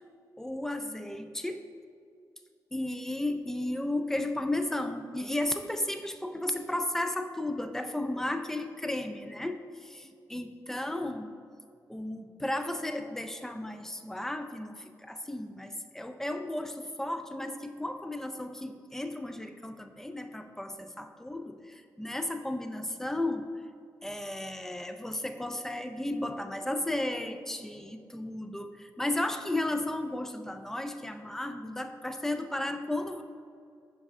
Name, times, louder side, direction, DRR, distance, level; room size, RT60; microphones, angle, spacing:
voice 1, 0.4-1.6 2.7-11.3 11.9-23.5 24.0-33.2, left 1 dB, 5° left, 7 dB, 0.3 m, -34 dB
5.6 x 5.2 x 3.5 m, 2.2 s
wide cardioid pair, 115°, 7 cm